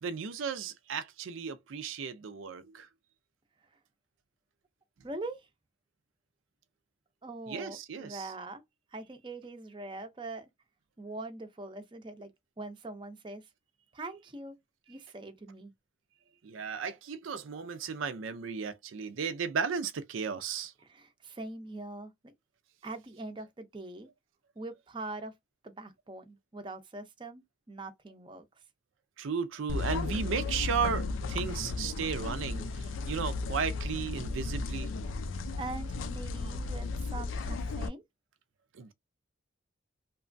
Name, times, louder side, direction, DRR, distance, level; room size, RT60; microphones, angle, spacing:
voice 1, 0.0-2.9 7.5-8.3 16.4-20.7 29.2-34.9 38.7-38.9, right 6 dB, 90° right, 0.4 m, -35 dB
voice 2, 5.0-5.5 7.2-8.6 8.9-10.5 11.0-12.3 12.6-13.5 13.9-14.6 14.9-15.7 20.8-22.3 22.8-24.1 24.6-25.3 25.6-28.4 35.6-38.0, right 2 dB, 25° right, 0.5 m, -42 dB
sound 1, 29.7-37.9, left 3 dB, 85° left, 0.4 m, -34 dB
2.9 x 2.2 x 2.5 m
head